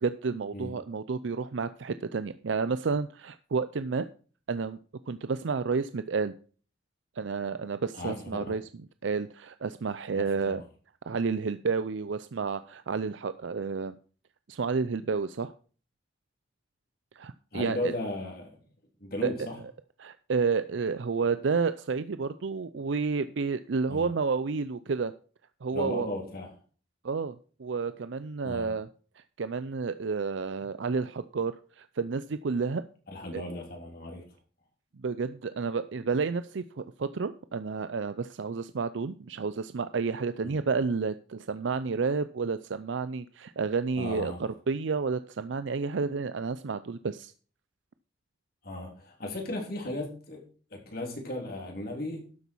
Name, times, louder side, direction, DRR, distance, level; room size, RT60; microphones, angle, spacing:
voice 1, 0.0-4.1 4.5-4.8 5.1-6.3 7.2-8.6 9.0-10.6 11.1-14.0 14.5-15.5 17.1-17.9 19.2-19.5 20.0-25.1 25.6-26.1 27.0-28.9 29.2-32.8 33.3-33.4 35.0-47.3, right 4 dB, 75° right, 0.5 m, -30 dB
voice 2, 7.9-8.6 10.1-10.6 17.5-18.6 19.0-19.6 23.9-24.1 25.7-26.5 28.4-28.7 33.1-34.2 40.4-40.5 44.0-44.4 48.6-50.4 50.7-52.3, left 1 dB, 50° left, 3.4 m, -36 dB
12.5 x 8.2 x 4.6 m
head